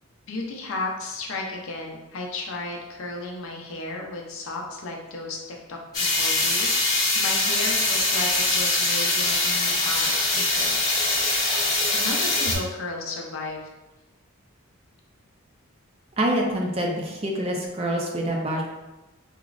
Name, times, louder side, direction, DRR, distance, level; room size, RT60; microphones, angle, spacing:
voice 1, 0.3-11.3 11.9-13.7, left 2 dB, 70° left, -1 dB, 0.6 m, -34 dB
sound 1, 5.9-12.5, left 2 dB, 15° left, 0.9 m, -23 dB
voice 2, 16.2-18.7, right 1 dB, 25° right, 0 dB, 0.4 m, -26 dB
4.7 x 2.0 x 2.4 m, 1.1 s
head